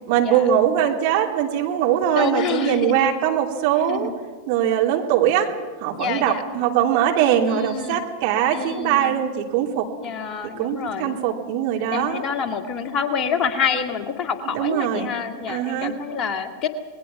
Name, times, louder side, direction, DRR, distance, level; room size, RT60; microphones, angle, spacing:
voice 1, 0.1-4.1 4.5-5.5 5.8-9.9 10.6-12.2 14.4-15.1 15.5-16.0, right 10 dB, 45° right, 1 dB, 3.0 m, -21 dB
voice 2, 2.1-3.1 3.9-4.1 6.0-6.4 7.5-8.0 8.5-9.2 10.0-11.2 11.9-16.7, left 7 dB, 30° left, 6 dB, 1.9 m, -27 dB
28.0 x 20.5 x 6.0 m, 1.5 s
figure-of-eight pair, 90°, 0 cm